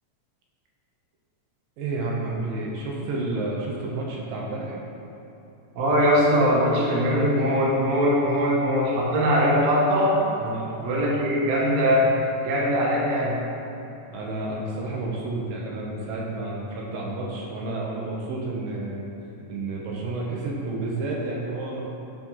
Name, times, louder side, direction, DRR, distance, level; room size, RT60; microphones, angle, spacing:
voice 1, 1.8-4.8 10.4-10.9 14.1-19.1 19.5-21.9, right 2 dB, 80° right, -3 dB, 2.6 m, -30 dB
voice 2, 5.8-10.2 10.8-12.1 12.4-13.4, equal, 60° right, -5 dB, 2.2 m, -21 dB
7.3 x 4.0 x 5.5 m, 2.9 s
omnidirectional pair, 4.0 m